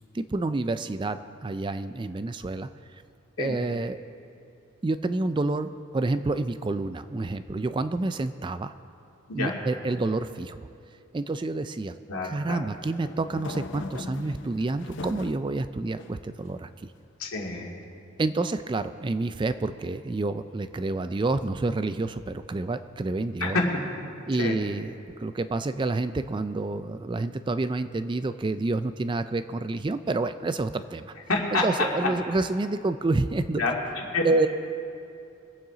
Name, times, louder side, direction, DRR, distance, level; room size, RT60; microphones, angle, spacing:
voice 1, 0.1-2.7 3.4-4.0 4.8-8.7 9.3-10.6 11.1-12.0 12.2-16.7 18.2-23.6 24.3-31.1 31.5-33.6 34.2-34.5, right 2 dB, 20° right, 11 dB, 0.3 m, -28 dB
voice 2, 12.1-12.6 17.2-17.7 23.4-23.6 24.4-24.6 31.3-31.6 33.6-34.3, left 3 dB, 90° left, -1 dB, 2.3 m, -28 dB
sound 1, 12.5-15.5 16.0-16.8, left 3 dB, 55° left, 0.6 m, -40 dB
23.5 x 8.8 x 3.9 m, 2.7 s
head